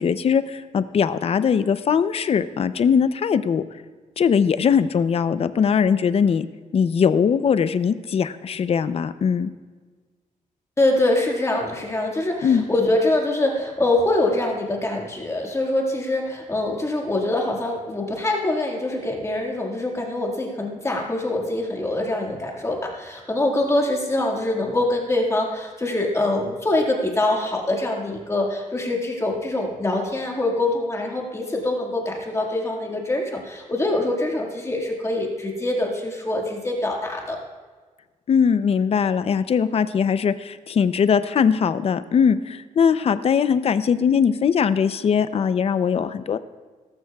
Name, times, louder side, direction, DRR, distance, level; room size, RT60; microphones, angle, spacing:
voice 1, 0.0-3.6 4.2-6.5 6.7-9.5 12.4-12.6 38.3-46.4, left 7 dB, 45° left, 13 dB, 0.5 m, -20 dB
voice 2, 10.8-37.4, left 2 dB, 20° left, 0 dB, 1.8 m, -24 dB
18.0 x 14.0 x 2.3 m, 1.4 s
wide cardioid pair, 150°, 14 cm